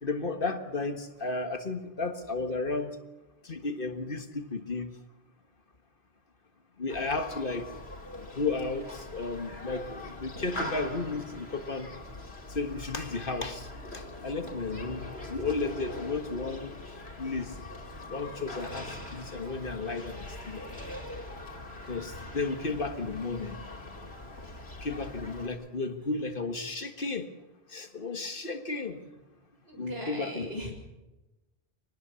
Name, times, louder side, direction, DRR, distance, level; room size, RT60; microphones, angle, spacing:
voice 1, 0.0-3.0 3.4-4.9 6.8-7.7 8.3-11.9 12.5-13.7 13.9-16.8 17.2-17.5 18.1-20.6 21.9-23.6 24.8-27.3 27.7-29.0 29.8-30.5, left 3 dB, 55° left, 7 dB, 1.8 m, -33 dB
Human group actions, 6.9-25.5, left 1 dB, 75° left, 3.3 m, -42 dB
voice 2, 7.6-8.0 22.8-23.0 29.6-30.7, right 1 dB, 75° right, 2 dB, 6.8 m, -41 dB
25.0 x 20.0 x 7.0 m, 1.1 s
omnidirectional pair, 1.1 m